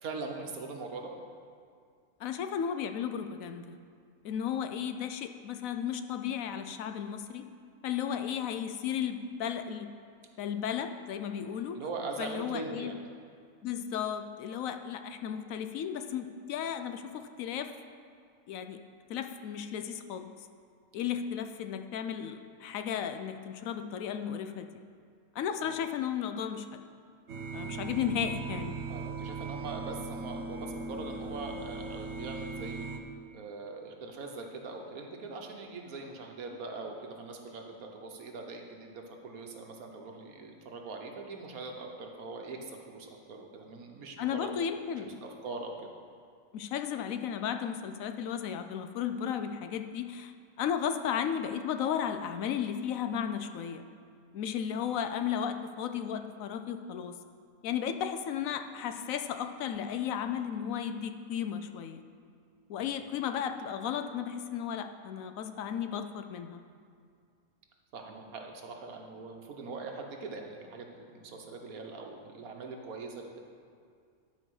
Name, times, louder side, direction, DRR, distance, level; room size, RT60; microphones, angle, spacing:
voice 1, 0.0-1.1 11.7-12.9 25.6-25.8 28.9-32.9 33.3-44.5 45.2-45.9 54.9-55.0 62.8-62.9 67.9-73.4, right 3 dB, 80° right, 2 dB, 1.5 m, -42 dB
voice 2, 2.2-3.8 4.2-7.5 7.8-9.9 10.4-11.8 12.2-12.9 13.6-17.7 18.5-18.8 19.1-20.4 20.9-24.7 25.3-26.8 27.5-28.8 44.2-45.2 46.5-50.3 50.6-53.8 54.3-57.2 57.6-62.0 62.7-66.6, left 8 dB, 75° left, 8 dB, 1.0 m, -34 dB
sound 1, 27.3-33.0, right 4 dB, 60° right, 0.9 m, -38 dB
12.0 x 4.7 x 6.3 m, 2.2 s
omnidirectional pair, 1.5 m